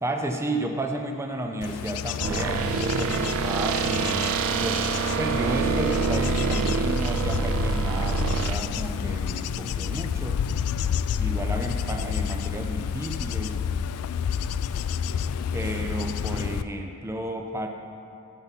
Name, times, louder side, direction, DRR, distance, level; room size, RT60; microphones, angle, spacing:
voice 1, 0.0-4.9 5.2-10.4 11.2-13.6 15.5-17.7, right 1 dB, 10° right, 3 dB, 0.5 m, -32 dB
Bird / Insect / Wind, 1.6-16.6, left 7 dB, 80° left, 0.3 m, -30 dB
sound 1, 2.2-8.6, right 5 dB, 70° right, 0.4 m, -26 dB
14.0 x 5.7 x 4.1 m, 2.8 s
head